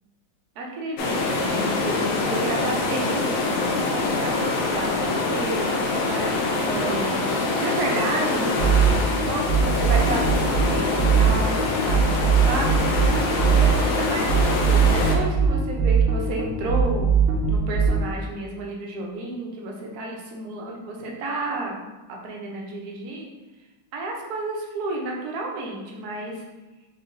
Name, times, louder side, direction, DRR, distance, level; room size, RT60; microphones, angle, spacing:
voice 1, 0.6-21.8 22.2-23.3 23.9-26.4, right 2 dB, 65° right, -1 dB, 1.0 m, -32 dB
sound 1, 1.0-15.2, left 3 dB, 80° left, 1.4 m, -25 dB
sound 2, 8.6-18.0, right 7 dB, 85° right, 1.5 m, -20 dB
4.5 x 3.2 x 2.5 m, 1.1 s
omnidirectional pair, 2.2 m